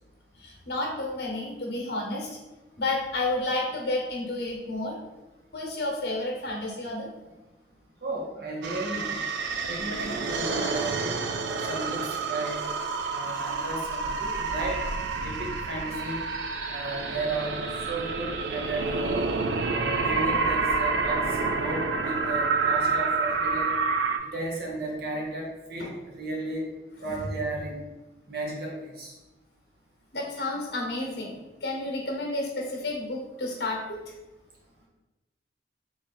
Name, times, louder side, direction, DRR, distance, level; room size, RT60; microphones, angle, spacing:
voice 1, 0.4-2.3 2.8-5.0 5.5-7.1 25.8-25.9 27.1-27.2 30.1-31.3 31.6-34.0, left 2 dB, 60° left, -1 dB, 0.9 m, -31 dB
voice 2, 8.0-9.2 9.6-11.2 11.7-12.7 13.1-14.8 15.2-16.2 16.7-19.2 19.7-23.7 24.2-25.9 26.2-26.6 27.0-27.9 28.3-29.1, right 2 dB, 55° right, -2 dB, 0.9 m, -34 dB
sound 1, 8.6-24.2, right 4 dB, 75° right, 0.3 m, -28 dB
3.1 x 2.7 x 3.9 m, 1.1 s
head